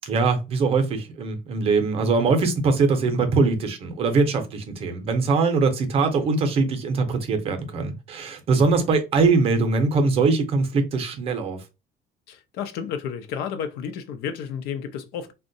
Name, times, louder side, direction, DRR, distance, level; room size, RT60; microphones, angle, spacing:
voice 1, 0.0-11.6, right 4 dB, 35° right, 0.5 m, -22 dB
voice 2, 12.3-15.3, left 7 dB, 85° left, 0.5 m, -32 dB
3.6 x 2.1 x 2.6 m
cardioid pair, 175°, 16 cm